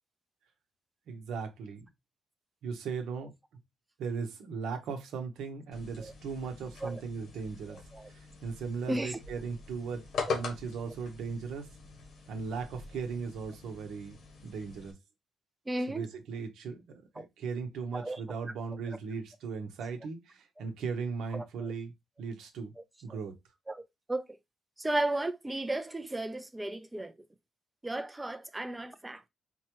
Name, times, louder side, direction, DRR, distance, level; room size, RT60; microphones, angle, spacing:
voice 1, 1.1-1.9 2.6-3.3 4.0-7.8 8.1-11.7 12.3-14.9 15.9-21.9 22.2-22.7 23.0-23.3, right 5 dB, 80° right, 0.9 m, -38 dB
sound 1, 5.7-14.9, left 4 dB, 65° left, 1.1 m, -42 dB
voice 2, 7.7-8.1 8.9-9.2 10.3-10.4 15.7-16.1 17.2-17.3 17.9-18.2 21.3-21.7 22.8-22.9 23.7-24.2 24.8-27.1 27.8-29.3, right 1 dB, 15° right, 0.4 m, -35 dB
4.2 x 2.3 x 2.9 m
cardioid pair, 90°, 0 cm